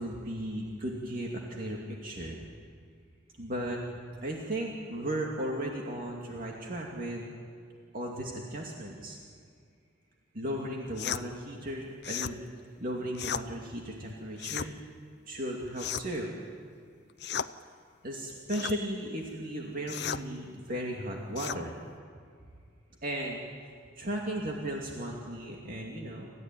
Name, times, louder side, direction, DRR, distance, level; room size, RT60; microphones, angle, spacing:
voice 1, 0.0-2.4 3.4-7.3 7.9-9.2 10.3-12.4 12.8-14.7 15.3-16.3 18.0-21.8 23.0-23.4 24.0-26.3, right 1 dB, 50° right, -1 dB, 2.5 m, -36 dB
sound 1, 11.0-11.2 12.0-12.4 13.1-13.5 14.4-14.7 15.8-16.2 17.2-17.5 18.5-18.8 19.9-20.2 21.4-21.6, left 8 dB, 60° left, 0.7 m, -35 dB
27.5 x 15.0 x 9.3 m, 2.2 s
head